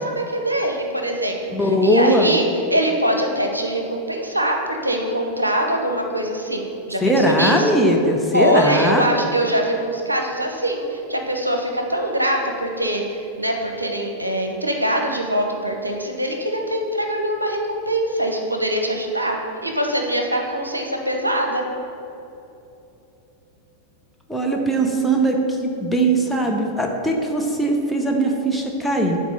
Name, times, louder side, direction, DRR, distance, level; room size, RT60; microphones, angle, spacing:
voice 1, 0.0-7.8 8.3-21.7, right 1 dB, 85° right, 2 dB, 0.6 m, -23 dB
voice 2, 1.5-2.3 7.0-9.0 24.3-29.2, right 1 dB, 5° left, 0 dB, 0.8 m, -19 dB
6.0 x 4.3 x 5.6 m, 2.9 s
figure-of-eight pair, 90°, 0 cm